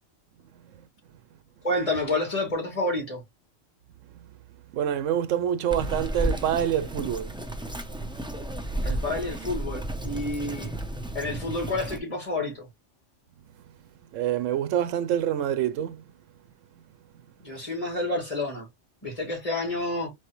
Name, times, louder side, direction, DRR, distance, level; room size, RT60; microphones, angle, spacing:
voice 1, 0.5-0.9 4.1-4.4 4.7-8.7 13.5-13.6 14.1-16.1 17.1-17.3, right 10 dB, 90° right, 0.9 m, -28 dB
voice 2, 1.6-3.2 8.8-10.7 11.1-12.7 17.4-18.7 19.0-20.1, left 2 dB, 30° left, 2.5 m, -29 dB
Bird vocalization bird call bird song, 5.7-12.0, right 1 dB, 5° right, 0.4 m, -32 dB
4.3 x 3.2 x 3.0 m
omnidirectional pair, 1.3 m